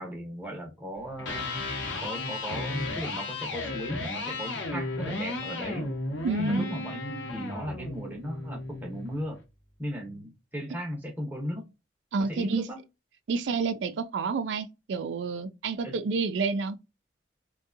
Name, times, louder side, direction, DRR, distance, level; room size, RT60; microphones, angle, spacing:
voice 1, 0.0-1.6 2.0-5.9 6.4-9.4 9.8-11.7 12.2-12.8 15.8-16.0, equal, 10° right, 0.7 m, -36 dB
Electric guitar, 1.1-9.2, left 2 dB, 75° left, 0.8 m, -34 dB
voice 2, 6.2-6.7 12.1-12.6 13.3-16.8, right 4 dB, 75° right, 0.4 m, -29 dB
2.6 x 2.2 x 2.4 m
head